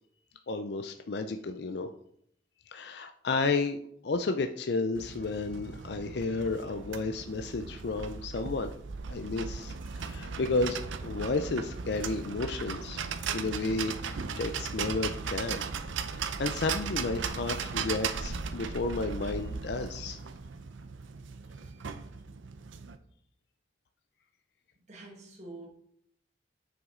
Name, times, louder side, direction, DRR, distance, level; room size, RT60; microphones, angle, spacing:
voice 1, 0.5-1.9 2.7-8.7 9.1-13.0 13.3-15.6 16.1-20.2, left 3 dB, 60° left, 7 dB, 0.4 m, -32 dB
sound 1, 4.9-23.0, right 5 dB, 85° right, 0.6 m, -37 dB
voice 2, 24.9-25.7, right 2 dB, 35° right, -2 dB, 1.5 m, -46 dB
7.9 x 6.2 x 3.7 m, 0.68 s
head